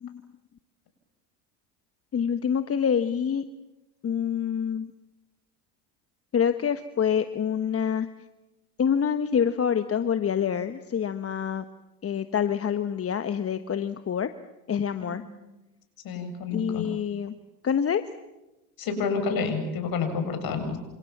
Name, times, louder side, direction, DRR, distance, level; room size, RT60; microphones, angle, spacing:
voice 1, 2.1-3.4 4.0-4.9 6.3-8.1 8.8-11.6 12.0-14.3 14.7-15.2 16.5-17.3 17.6-18.0, left 8 dB, 30° left, 10 dB, 1.3 m, -26 dB
voice 2, 16.0-16.9 18.8-20.8, left 4 dB, 50° left, 7 dB, 7.7 m, -29 dB
29.0 x 26.5 x 7.4 m, 1.0 s
hypercardioid pair, 85°, 45 cm